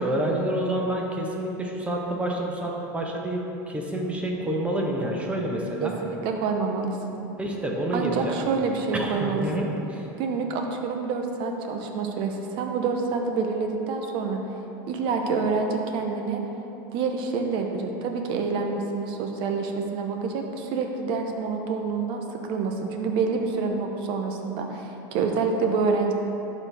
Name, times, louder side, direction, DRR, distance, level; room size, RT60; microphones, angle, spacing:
voice 1, 0.0-3.4 3.7-5.9 7.4-8.4 8.9-10.1, right 1 dB, 10° right, -1 dB, 1.0 m, -28 dB
voice 2, 5.8-7.2 7.9-9.7 10.2-14.4 14.9-16.4 16.9-26.1, right 4 dB, 50° right, 3 dB, 0.9 m, -27 dB
11.5 x 4.2 x 3.5 m, 3.0 s
supercardioid pair, 125°, 11 cm